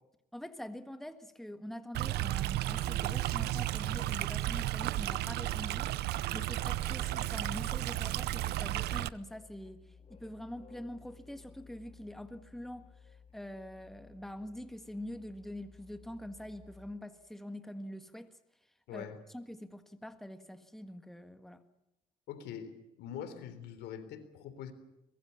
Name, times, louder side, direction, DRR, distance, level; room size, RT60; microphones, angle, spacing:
voice 1, 0.3-18.3 18.9-21.6, left 1 dB, ahead, 1.7 m, -45 dB
Stream, 1.9-9.1, right 15 dB, 75° right, 0.8 m, -33 dB
Musical instrument, 2.1-17.2, left 5 dB, 40° left, 2.1 m, -57 dB
voice 2, 22.3-22.7 23.0-24.7, left 9 dB, 85° left, 3.7 m, -43 dB
24.0 x 21.5 x 7.0 m
cardioid pair, 110°, 17 cm